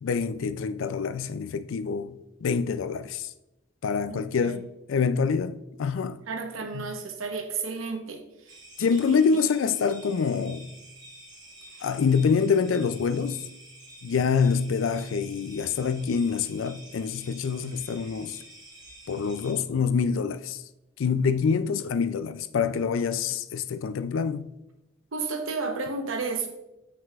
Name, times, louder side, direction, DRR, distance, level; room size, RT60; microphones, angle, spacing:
voice 1, 0.0-3.3 3.8-6.2 6.7-6.9 8.8-10.7 11.8-13.4 14.0-18.4 19.1-20.6 21.0-24.5, left 5 dB, 75° left, 0.4 m, -26 dB
voice 2, 4.1-4.6 6.3-8.5 25.1-26.5, right 4 dB, 85° right, 1.0 m, -32 dB
sound 1, 8.5-19.5, right 1 dB, 20° right, 1.2 m, -49 dB
7.5 x 5.9 x 2.4 m
head